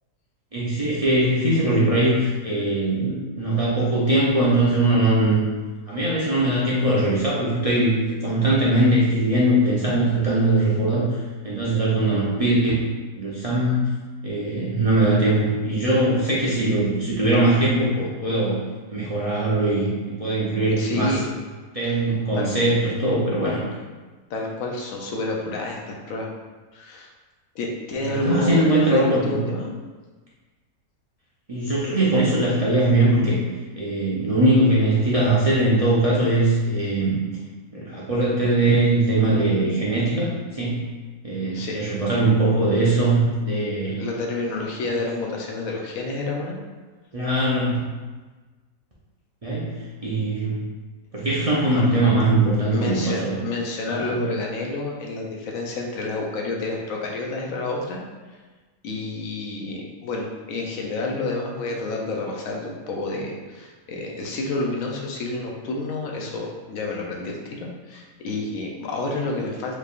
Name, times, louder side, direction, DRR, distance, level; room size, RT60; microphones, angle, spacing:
voice 1, 0.5-5.4 5.9-8.0 8.2-11.2 11.4-12.7 13.2-13.8 14.2-18.6 18.9-21.1 21.7-23.6 28.1-29.4 31.5-33.4 33.8-37.1 37.7-40.8 41.2-44.0 47.1-47.8 49.4-49.7 50.0-50.5 51.1-53.4 53.9-54.2, right 2 dB, 40° right, -7 dB, 0.5 m, -21 dB
voice 2, 20.8-21.2 21.8-22.0 22.3-22.5 24.3-26.3 26.7-27.1 27.5-29.7 41.5-41.8 44.0-46.6 51.7-51.8 52.7-58.0 58.8-69.8, left 2 dB, 70° left, 0 dB, 1.0 m, -29 dB
4.7 x 3.3 x 2.4 m, 1.3 s
omnidirectional pair, 1.6 m